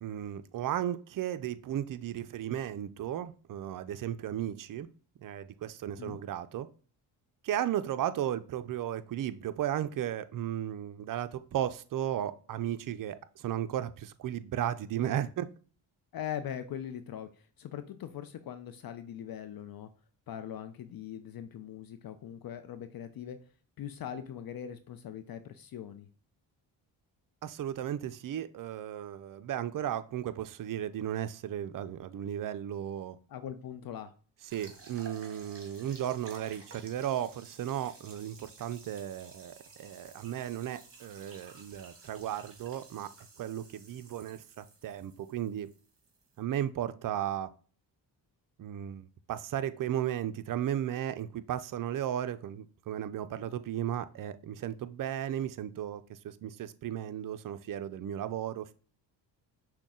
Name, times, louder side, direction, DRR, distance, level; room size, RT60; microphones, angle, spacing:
voice 1, 0.0-4.9 5.2-6.7 7.4-15.5 27.4-33.2 34.5-43.1 43.4-45.7 46.4-47.5 48.6-58.7, right 11 dB, 45° right, 12 dB, 0.5 m, -35 dB
voice 2, 16.1-19.9 20.3-23.4 23.8-26.1 33.3-34.1, left 9 dB, 50° left, 10 dB, 0.5 m, -41 dB
sound 1, 34.5-46.4, right 4 dB, 30° right, 1.6 m, -54 dB
5.9 x 2.3 x 3.7 m, 0.41 s
supercardioid pair, 65°, 45 cm